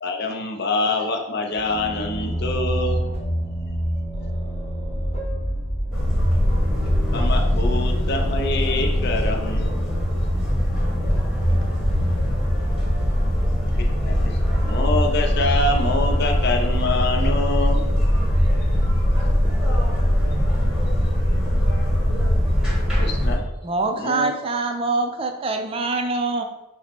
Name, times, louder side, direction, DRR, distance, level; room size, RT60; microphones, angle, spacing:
voice 1, 0.0-3.0 7.1-9.7 13.8-18.1 23.0-23.4 23.9-24.3, left 2 dB, 50° left, 2 dB, 0.5 m, -25 dB
sound 1, 1.5-10.1, equal, 30° left, 1.1 m, -29 dB
voice 2, 4.1-6.3 10.5-12.2, equal, 85° left, 1 dB, 1.0 m, -47 dB
sound 2, 5.9-23.4, equal, 5° right, 1.0 m, -21 dB
voice 3, 23.6-26.4, right 3 dB, 25° right, 5 dB, 0.3 m, -24 dB
5.6 x 2.1 x 4.4 m, 0.98 s
head